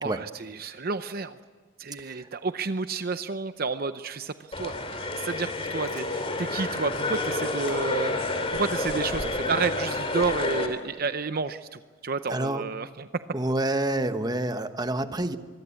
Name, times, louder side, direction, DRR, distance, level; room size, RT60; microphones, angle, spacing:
voice 1, 0.0-1.4 1.8-8.1 8.5-13.1, right 4 dB, 50° right, 10 dB, 0.7 m, -31 dB
voice 2, 2.0-2.3 12.3-12.7 13.3-15.4, right 1 dB, 20° right, 9 dB, 1.1 m, -28 dB
sound 1, 4.5-10.7, left 2 dB, 30° left, 2.9 m, -29 dB
Chewing mastication, 5.8-6.1 6.7-6.8 7.0-7.2 7.6-7.7 8.1-9.6 9.9-11.2 11.5-11.6, left 1 dB, 50° left, 2.4 m, -45 dB
25.5 x 21.5 x 8.4 m, 1.5 s
head